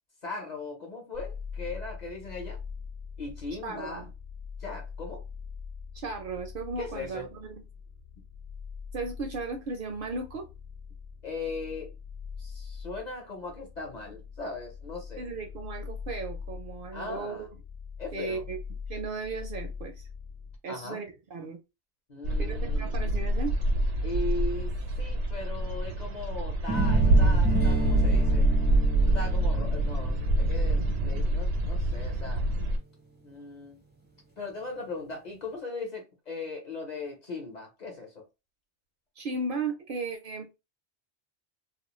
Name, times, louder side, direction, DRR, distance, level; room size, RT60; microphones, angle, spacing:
voice 1, 0.2-2.6 3.2-4.1 4.6-5.2 6.8-7.3 11.2-11.9 12.4-15.2 16.9-17.5 18.0-18.4 20.7-21.0 22.1-22.9 24.0-28.5 29.1-32.4 33.2-33.8 34.4-38.2, left 3 dB, 45° left, 0.8 m, -38 dB
sound 1, 1.1-20.6, left 6 dB, 75° left, 0.8 m, -42 dB
voice 2, 3.6-4.1 5.9-7.6 8.9-10.5 15.2-17.5 18.1-18.6 18.9-20.1 20.6-21.6 22.4-23.5 39.2-40.5, right 3 dB, 60° right, 0.6 m, -36 dB
sound 2, 22.2-32.8, right 1 dB, 90° right, 1.0 m, -25 dB
sound 3, 26.7-32.6, right 2 dB, 15° right, 0.5 m, -35 dB
2.4 x 2.0 x 3.0 m
omnidirectional pair, 1.1 m